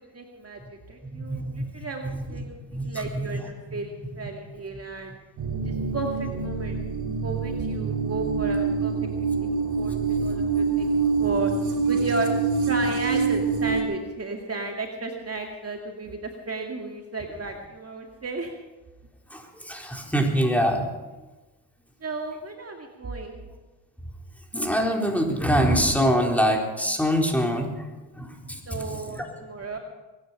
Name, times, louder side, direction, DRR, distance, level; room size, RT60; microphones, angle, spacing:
voice 1, 0.1-5.2 5.6-6.9 7.2-8.9 9.4-9.5 9.8-11.5 11.9-12.3 12.7-18.5 22.0-23.5 28.7-29.8, right 3 dB, 30° right, 2 dB, 2.1 m, -34 dB
voice 2, 1.1-1.7 2.1-2.2 2.7-3.4 3.7-3.8 5.6-5.9 19.3-20.8 24.5-27.7 28.2-29.2, equal, 5° left, 1 dB, 3.9 m, -25 dB
sound 1, 5.4-13.8, right 5 dB, 55° right, 3.3 m, -25 dB
22.5 x 10.5 x 5.6 m, 1.1 s
hypercardioid pair, 60°, 46 cm